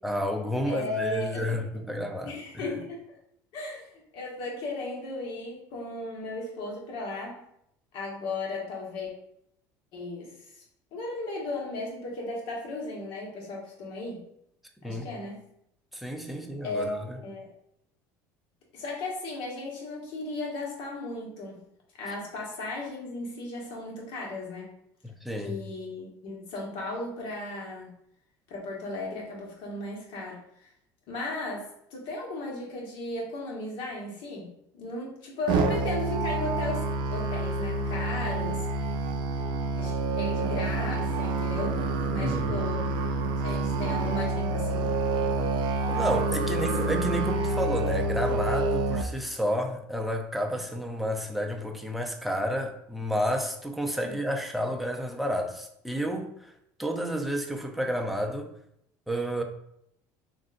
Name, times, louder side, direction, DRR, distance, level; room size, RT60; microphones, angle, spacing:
voice 1, 0.0-2.8 14.8-15.1 15.9-17.2 25.0-25.6 42.1-42.6 45.9-56.5 56.8-58.5 59.1-59.4, equal, ahead, 0.5 m, -31 dB
voice 2, 0.7-1.5 2.2-3.1 3.5-7.4 7.9-9.1 9.9-10.6 10.9-14.2 14.8-15.4 16.6-17.5 18.7-21.6 22.0-24.7 25.4-27.9 28.5-30.7 31.1-34.5 34.7-38.7 39.8-41.8 42.1-42.8 43.4-44.9 54.0-54.2, left 2 dB, 65° left, 1.3 m, -36 dB
Musical instrument, 35.5-49.0, right 2 dB, 55° right, 0.4 m, -28 dB
3.6 x 2.6 x 2.6 m
supercardioid pair, 85°, 9 cm